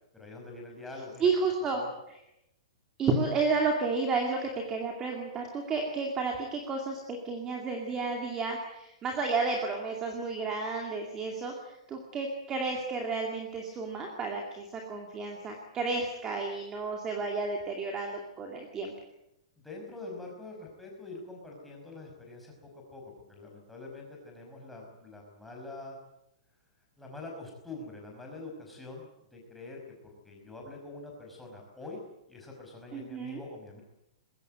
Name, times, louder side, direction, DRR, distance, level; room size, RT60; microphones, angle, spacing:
voice 1, 0.1-1.3 1.7-1.9 19.6-26.0 27.0-32.0 32.3-33.8, left 2 dB, 5° left, -1 dB, 5.2 m, -45 dB
voice 2, 1.2-1.8 2.1-2.2 3.0-18.9 32.9-33.4, right 4 dB, 15° right, 2 dB, 2.4 m, -32 dB
21.0 x 17.0 x 9.2 m, 0.84 s
hypercardioid pair, 175°, 3 cm